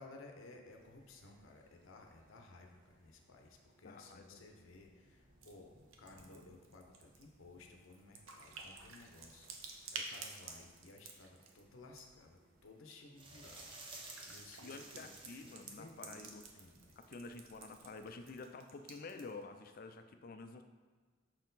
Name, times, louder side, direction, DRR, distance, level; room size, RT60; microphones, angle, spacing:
voice 1, 0.0-5.7 6.0-13.7 14.3-16.9, left 2 dB, 80° left, 2 dB, 0.8 m, -57 dB
sound 1, 0.6-18.4, right 1 dB, 45° right, 1.1 m, -70 dB
voice 2, 3.8-4.4 14.6-16.4 17.0-20.6, left 3 dB, 45° left, 7 dB, 0.4 m, -49 dB
sound 2, 5.4-5.5 5.8-12.2 12.7-13.0 13.8-19.4, right 4 dB, 85° right, 0.7 m, -51 dB
sound 3, 13.2-15.8 18.1-18.2, right 2 dB, 25° right, 0.8 m, -52 dB
6.2 x 4.4 x 4.0 m, 1.5 s
head